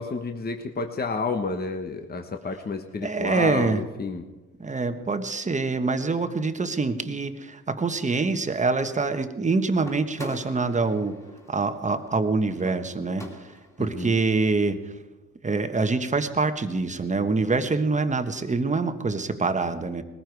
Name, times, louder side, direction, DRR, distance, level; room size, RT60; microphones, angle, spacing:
voice 1, 0.0-4.2 13.8-14.2, left 3 dB, 30° left, 5 dB, 1.3 m, -30 dB
voice 2, 3.0-3.8 4.6-11.1 11.5-13.3 13.8-14.8 15.4-20.0, right 3 dB, 25° right, 8 dB, 1.3 m, -25 dB
sound 1, 9.8-13.9, equal, 10° left, 2.6 m, -43 dB
20.0 x 14.5 x 4.7 m, 1.1 s
cardioid pair, 90°, 30 cm